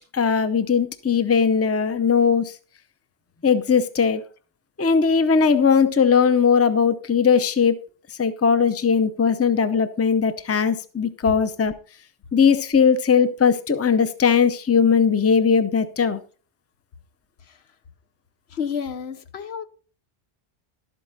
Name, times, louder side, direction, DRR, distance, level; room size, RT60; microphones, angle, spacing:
voice 1, 0.1-2.5 3.4-4.2 4.8-7.8 8.2-11.7 12.3-16.2, left 6 dB, 15° left, 0.5 m, -19 dB
voice 2, 18.5-19.6, left 7 dB, 85° left, 1.1 m, -31 dB
12.0 x 8.3 x 4.1 m
omnidirectional pair, 1.0 m